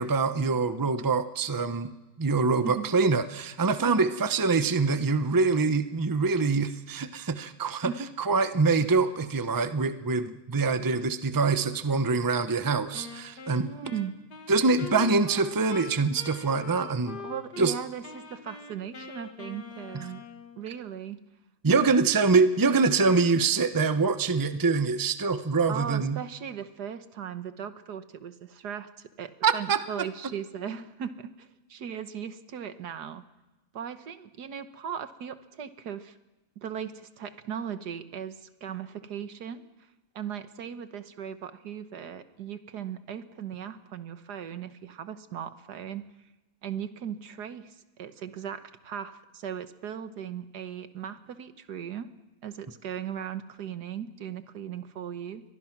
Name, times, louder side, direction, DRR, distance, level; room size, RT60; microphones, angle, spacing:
voice 1, 0.0-1.9 2.2-7.9 8.2-13.7 14.5-17.2 17.6-17.7 19.9-20.0 21.6-26.2 29.4-29.8, right 4 dB, 15° right, 10 dB, 0.7 m, -24 dB
voice 2, 3.8-4.2 7.8-8.1 13.6-14.2 17.2-20.2 20.6-21.2 21.7-21.8 25.7-33.2 33.7-36.1 36.6-39.6 40.1-46.1 46.6-52.1 52.4-55.4, right 8 dB, 80° right, 11 dB, 1.7 m, -38 dB
Wind instrument woodwind instrument, 12.9-17.7 18.0-20.6, left 5 dB, 80° left, 2.6 m, -43 dB
30.0 x 23.5 x 6.1 m, 1.1 s
omnidirectional pair, 1.7 m